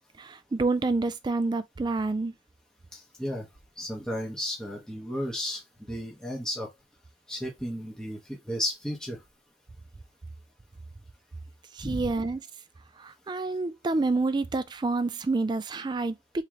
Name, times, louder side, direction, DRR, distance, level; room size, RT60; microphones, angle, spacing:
voice 1, 0.2-2.3 11.7-12.4 13.0-16.4, right 3 dB, 25° right, 0.3 m, -28 dB
voice 2, 2.9-3.5 3.8-6.7 7.3-9.2 11.8-12.1, equal, 5° left, 1.0 m, -34 dB
3.7 x 2.9 x 3.0 m
head